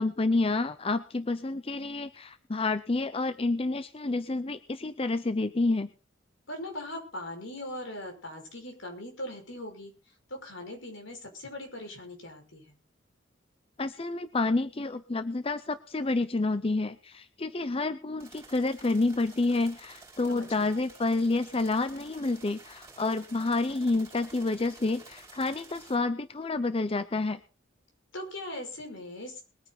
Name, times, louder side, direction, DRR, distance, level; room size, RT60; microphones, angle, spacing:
voice 1, 0.0-5.9 13.8-27.4, left 3 dB, 30° left, 12 dB, 0.6 m, -29 dB
voice 2, 6.5-12.8 20.3-20.8 28.1-29.4, left 1 dB, 75° left, 3 dB, 5.6 m, -40 dB
sound 1, 18.2-26.0, right 3 dB, 15° right, 5.0 m, -52 dB
22.0 x 9.5 x 4.1 m, 0.34 s
head